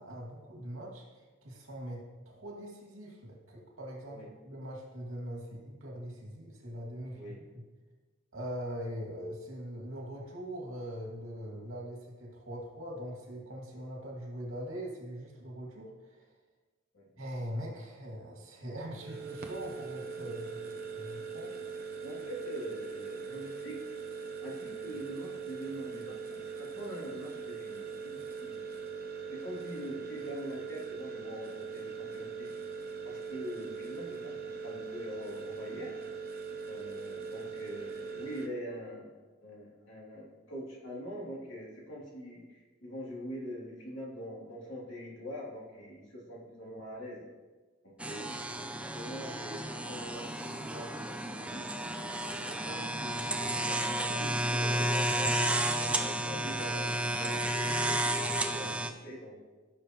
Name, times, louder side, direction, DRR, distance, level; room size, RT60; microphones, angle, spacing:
voice 1, 0.0-7.6 8.3-16.3 17.1-21.5, equal, 85° right, -1 dB, 2.4 m, -42 dB
sound 1, 19.0-38.5, right 5 dB, 50° right, 0.9 m, -41 dB
voice 2, 22.0-23.8 24.4-28.7 29.3-32.5 33.0-36.0 36.7-39.1 39.4-47.2 47.8-51.7 52.4-54.9 55.5-59.4, equal, 65° left, -5 dB, 2.9 m, -44 dB
sound 2, 48.0-58.9, right 1 dB, 5° right, 0.5 m, -32 dB
15.0 x 6.7 x 3.1 m, 1.3 s
head